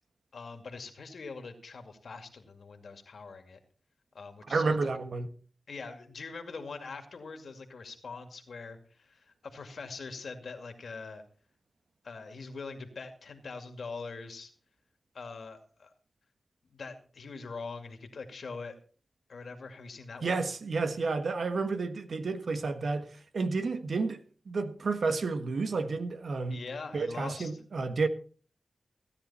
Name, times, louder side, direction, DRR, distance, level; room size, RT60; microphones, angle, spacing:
voice 1, 0.3-3.6 4.1-4.9 5.7-11.2 12.0-14.5 15.1-15.9 16.6-18.8 19.3-20.4 26.5-27.5, left 4 dB, 75° left, 2.3 m, -43 dB
voice 2, 4.5-5.3 20.2-26.6 26.9-28.1, right 4 dB, 75° right, 1.4 m, -31 dB
16.0 x 10.0 x 4.2 m
cardioid pair, 60°, 0 cm